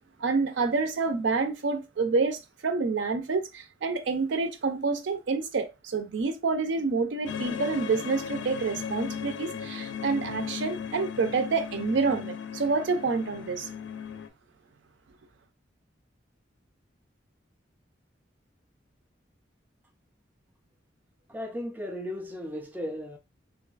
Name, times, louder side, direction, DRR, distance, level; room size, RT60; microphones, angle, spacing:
voice 1, 0.2-13.7, right 4 dB, 75° right, 0.5 m, -28 dB
sound 1, 7.3-14.3, left 7 dB, 80° left, 0.4 m, -37 dB
voice 2, 21.3-23.2, equal, 10° right, 0.3 m, -35 dB
3.1 x 2.3 x 2.3 m
head